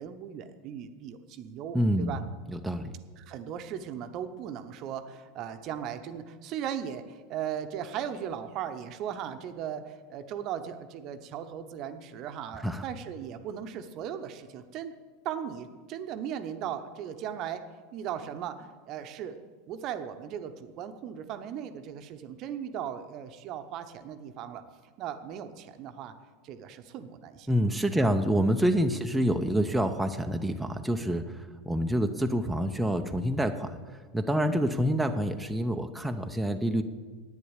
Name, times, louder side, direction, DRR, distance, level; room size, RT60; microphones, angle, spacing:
voice 1, 0.0-2.2 3.2-14.9 15.2-19.4 19.7-26.1 26.4-27.5 28.0-28.1 34.3-34.6, right 9 dB, 40° right, 9 dB, 0.9 m, -38 dB
voice 2, 1.7-2.2 2.5-2.9 12.6-12.8 27.5-33.8 34.1-36.8, equal, 5° right, 4 dB, 0.7 m, -27 dB
11.0 x 9.3 x 8.2 m, 1.4 s
figure-of-eight pair, 80°, 0 cm